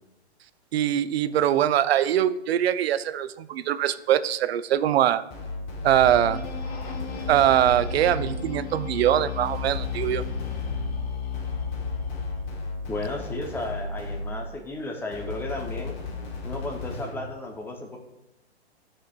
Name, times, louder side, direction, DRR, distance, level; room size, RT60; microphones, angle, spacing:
voice 1, 0.7-5.2 5.8-6.5 7.3-10.2, right 11 dB, 65° right, 14 dB, 0.5 m, -22 dB
sound 1, 5.3-8.6 9.5-14.6 15.1-17.3, left 2 dB, 45° left, 1.6 m, -35 dB
sound 2, 5.9-12.5, left 7 dB, 65° left, 1.3 m, -34 dB
voice 2, 12.9-15.9 16.4-18.0, left 2 dB, 5° left, 2 dB, 0.6 m, -34 dB
12.5 x 4.4 x 2.3 m, 0.89 s
hypercardioid pair, 130°, 33 cm